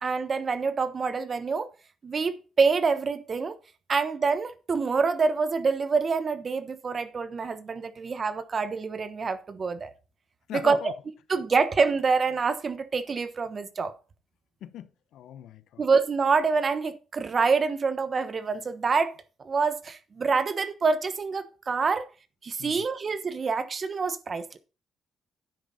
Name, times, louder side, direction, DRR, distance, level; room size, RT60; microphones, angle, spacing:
voice 1, 0.0-1.7 2.0-3.6 3.9-9.9 10.5-10.9 11.3-13.9 15.8-19.1 19.4-22.1 22.4-24.6, right 4 dB, 40° right, 1.1 m, -26 dB
voice 2, 10.5-10.9 14.6-15.8 22.6-22.8, left 11 dB, 80° left, 0.8 m, -40 dB
9.8 x 8.0 x 4.1 m
cardioid pair, 90°, 0 cm